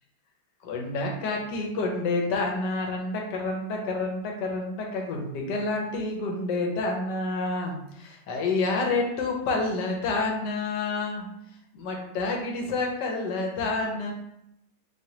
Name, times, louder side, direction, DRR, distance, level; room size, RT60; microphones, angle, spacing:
voice 1, 0.6-11.3 11.7-14.1, left 3 dB, 80° left, 1 dB, 1.3 m, -28 dB
3.1 x 2.9 x 2.7 m, 0.78 s
omnidirectional pair, 1.9 m